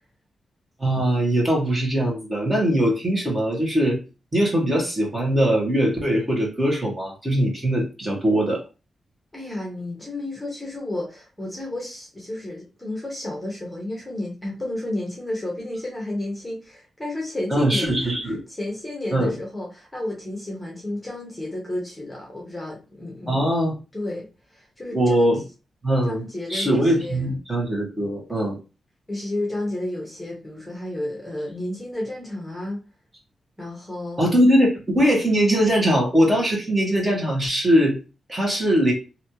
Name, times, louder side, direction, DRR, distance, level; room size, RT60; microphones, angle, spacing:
voice 1, 0.8-4.0 4.3-8.6 17.5-18.4 19.1-19.3 23.3-23.7 24.9-25.4 25.8-26.2 26.5-28.6 34.2-38.0 38.3-38.9, equal, 25° right, 1.5 m, -21 dB
voice 2, 9.3-18.1 18.5-23.5 23.9-25.3 26.0-27.4 29.1-32.8 33.6-34.3, left 1 dB, 10° left, 1.1 m, -32 dB
3.2 x 2.8 x 2.8 m
wide cardioid pair, 110°, 0 cm